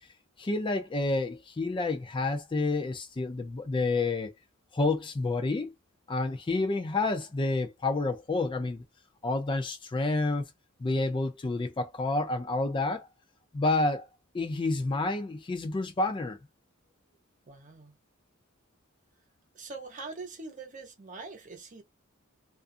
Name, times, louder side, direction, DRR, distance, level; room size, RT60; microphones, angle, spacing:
voice 1, 0.4-4.3 4.7-5.7 6.1-8.8 9.2-10.5 10.8-13.1 13.5-14.1 14.3-16.4, left 2 dB, 25° left, 0.4 m, -29 dB
voice 2, 17.5-18.0 19.5-21.8, right 3 dB, 40° right, 0.8 m, -43 dB
2.4 x 2.4 x 2.5 m
head